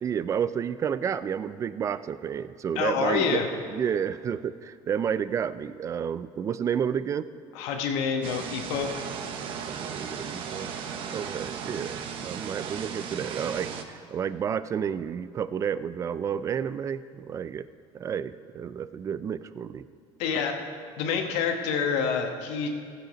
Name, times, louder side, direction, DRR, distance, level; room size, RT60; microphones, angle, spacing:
voice 1, 0.0-3.4 3.7-7.3 9.7-10.7 11.1-17.7 17.9-19.9, right 8 dB, 30° right, 15 dB, 0.4 m, -30 dB
voice 2, 2.7-3.5 7.5-8.9 20.2-20.6 21.0-22.7, left 6 dB, 85° left, 4 dB, 1.3 m, -27 dB
sound 1, 8.2-13.8, right 7 dB, 55° right, 0.9 m, -36 dB
15.5 x 7.7 x 5.2 m, 2.2 s
cardioid pair, 140°, 10 cm